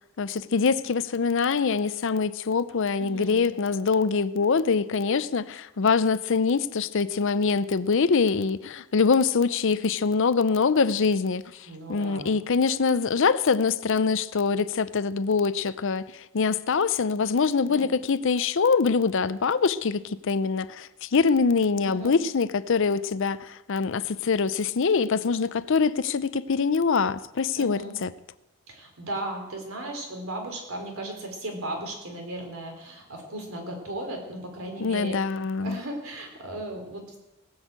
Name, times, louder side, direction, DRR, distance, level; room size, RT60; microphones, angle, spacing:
voice 1, 0.2-28.1 34.8-35.8, left 5 dB, 65° left, 0.6 m, -24 dB
voice 2, 3.0-3.4 11.7-12.3 17.6-17.9 21.8-22.2 27.5-28.0 28.7-35.2 35.6-37.2, right 1 dB, 85° right, 3.7 m, -36 dB
19.0 x 6.4 x 8.2 m
head